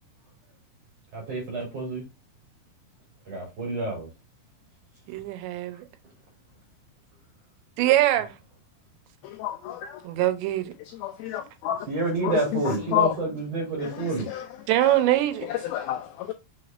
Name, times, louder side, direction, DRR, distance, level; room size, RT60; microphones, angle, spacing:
voice 1, 1.1-2.0 3.3-4.1 11.9-14.3, right 3 dB, 40° right, 3.6 m, -28 dB
voice 2, 5.1-5.7 7.8-8.3 10.0-10.7 14.7-15.5, right 14 dB, 90° right, 3.1 m, -22 dB
voice 3, 9.2-10.0 10.9-11.9 12.2-13.2 13.8-14.5 15.4-16.3, left 12 dB, 90° left, 2.1 m, -30 dB
6.6 x 6.0 x 2.5 m
omnidirectional pair, 4.9 m